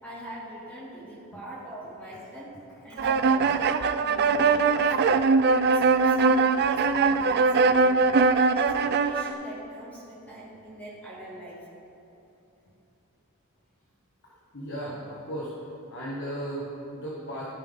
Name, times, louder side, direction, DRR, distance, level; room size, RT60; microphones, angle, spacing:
voice 1, 0.0-2.5 2.8-5.3 5.6-8.0 8.3-11.7, right 1 dB, 5° left, -9 dB, 2.0 m, -42 dB
sound 1, 3.0-9.3, right 4 dB, 50° right, 0.3 m, -21 dB
voice 2, 14.2-15.6 15.9-17.4, right 1 dB, 55° left, -6 dB, 1.4 m, -36 dB
14.5 x 5.5 x 3.6 m, 3.0 s
head